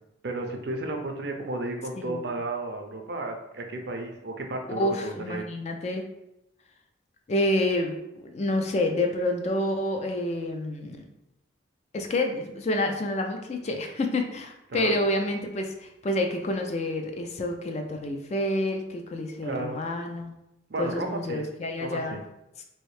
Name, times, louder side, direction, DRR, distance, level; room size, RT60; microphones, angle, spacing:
voice 1, 0.2-5.4 14.7-15.0 19.4-19.8 20.7-21.5 21.8-22.2, right 2 dB, 55° right, 3 dB, 0.5 m, -33 dB
voice 2, 2.0-2.3 4.7-6.0 7.3-8.0 8.2-11.1 11.9-20.4 20.8-22.2, left 1 dB, 35° left, 4 dB, 0.3 m, -28 dB
3.1 x 2.7 x 3.1 m, 0.88 s
head